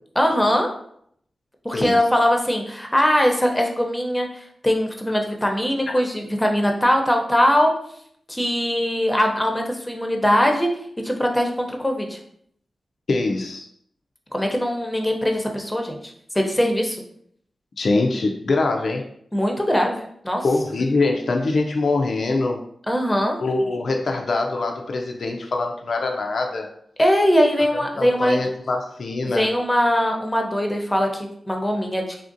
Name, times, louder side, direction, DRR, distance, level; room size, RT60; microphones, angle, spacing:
voice 1, 0.2-0.7 1.6-4.3 4.6-7.7 8.3-10.7 11.0-12.2 14.3-16.0 16.3-17.0 19.3-20.4 22.9-23.4 27.0-28.4 29.3-32.0, equal, 10° left, 2 dB, 0.6 m, -21 dB
voice 2, 13.1-13.7 17.8-19.0 20.4-22.6 23.4-26.7 28.0-29.5, left 3 dB, 70° left, 2 dB, 0.3 m, -23 dB
3.4 x 2.5 x 2.6 m, 0.67 s
cardioid pair, 55°, 0 cm